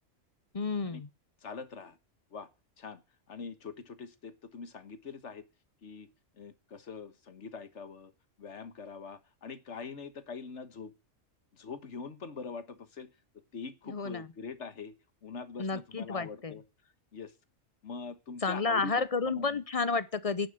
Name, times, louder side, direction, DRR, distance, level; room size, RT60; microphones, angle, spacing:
voice 1, 0.5-1.1 13.9-14.3 15.6-16.5 18.4-20.5, left 4 dB, 35° left, 0.7 m, -31 dB
voice 2, 1.4-2.0 2.3-2.5 2.8-3.0 3.3-5.4 5.8-6.1 6.3-8.1 8.4-10.9 11.5-13.2 13.5-14.9 15.2-17.3 17.8-19.6, left 5 dB, 65° left, 1.6 m, -43 dB
10.5 x 9.6 x 6.4 m
omnidirectional pair, 1.3 m